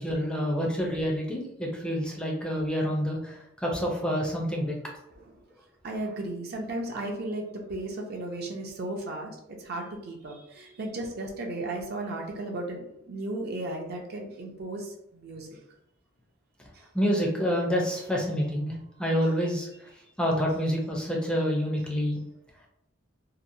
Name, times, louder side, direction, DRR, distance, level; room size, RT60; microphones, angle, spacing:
voice 1, 0.0-4.7 16.9-19.7 20.2-22.2, equal, 5° left, -2 dB, 0.4 m, -28 dB
voice 2, 5.8-9.3 9.6-15.5, right 2 dB, 50° right, 1 dB, 0.5 m, -35 dB
2.8 x 2.1 x 2.5 m, 0.80 s
head